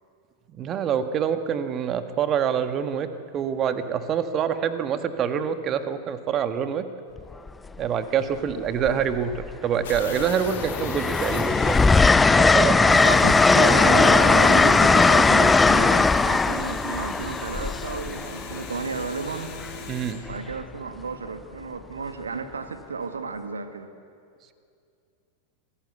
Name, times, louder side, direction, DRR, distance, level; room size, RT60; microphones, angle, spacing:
voice 1, 0.5-3.1 3.3-6.9 7.8-11.8 12.4-12.9 19.9-20.2, right 8 dB, 30° right, 9 dB, 1.6 m, -26 dB
Train, 7.2-7.5 8.8-9.5 9.9-18.7 20.3-20.5, left 3 dB, 10° left, 0.6 m, -19 dB
sound 1, 9.8-20.0, left 9 dB, 55° left, 1.6 m, -41 dB
voice 2, 12.8-19.6 20.3-23.9, right 4 dB, 75° right, 8 dB, 1.7 m, -32 dB
sound 2, 12.9-20.1, left 2 dB, 35° left, 4.8 m, -41 dB
26.0 x 17.5 x 8.4 m, 2.4 s
figure-of-eight pair, 90°, 0 cm